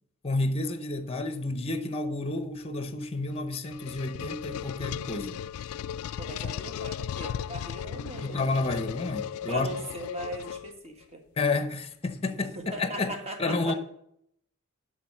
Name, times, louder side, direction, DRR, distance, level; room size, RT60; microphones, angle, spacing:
voice 1, 0.2-5.4 8.2-9.7 11.4-13.1 13.4-13.7, left 3 dB, 25° left, 0.7 m, -30 dB
sound 1, 3.3-11.0, left 9 dB, 80° left, 0.3 m, -36 dB
voice 2, 6.2-8.4 9.5-11.2 12.3-13.7, right 1 dB, 30° right, 1.5 m, -39 dB
11.5 x 3.9 x 7.6 m
head